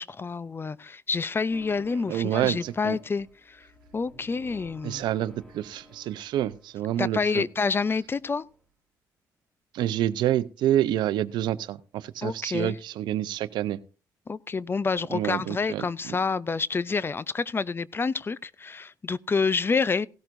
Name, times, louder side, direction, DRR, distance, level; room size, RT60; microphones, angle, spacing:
voice 1, 0.0-3.6 3.9-5.0 7.0-8.5 12.2-12.7 14.3-20.1, left 4 dB, 30° left, 0.5 m, -28 dB
sound 1, 1.5-7.2 7.5-8.7, equal, 10° left, 3.2 m, -53 dB
voice 2, 2.1-3.0 4.8-7.5 9.7-13.8 15.1-16.2, right 12 dB, 80° right, 0.6 m, -28 dB
17.0 x 12.0 x 2.6 m
supercardioid pair, 70°, 8 cm